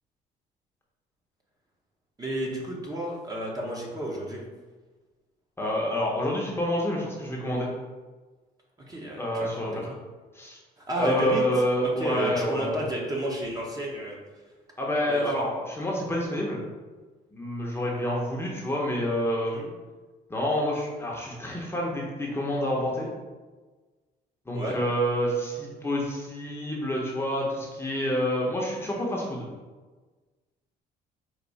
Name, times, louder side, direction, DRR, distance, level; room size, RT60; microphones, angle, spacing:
voice 1, 2.2-4.4 8.9-10.0 10.8-11.4 11.8-14.2 15.0-15.2 19.4-19.7 24.5-24.8, right 1 dB, 20° right, -2 dB, 1.0 m, -31 dB
voice 2, 5.6-7.7 9.2-9.9 10.3-10.6 11.0-12.9 14.8-16.6 17.3-19.6 20.3-23.1 24.5-29.5, equal, 15° left, -3 dB, 0.9 m, -28 dB
4.6 x 2.6 x 4.0 m, 1.3 s
cardioid pair, 110°, 17 cm